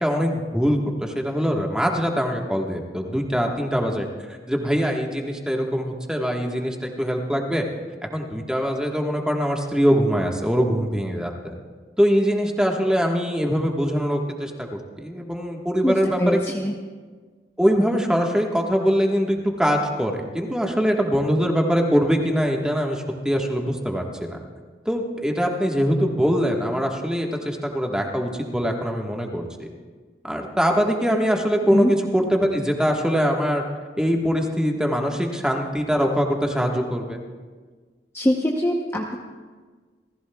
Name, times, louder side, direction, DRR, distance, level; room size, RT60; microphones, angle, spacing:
voice 1, 0.0-7.6 8.1-11.5 12.0-14.7 15.0-16.4 17.6-24.4 24.8-29.7 30.2-33.6 34.0-37.2, equal, 5° right, 1 dB, 1.4 m, -23 dB
voice 2, 15.8-16.7 31.7-31.9 38.1-39.2, equal, 15° left, 0 dB, 0.8 m, -23 dB
29.0 x 15.5 x 2.3 m, 1.5 s
head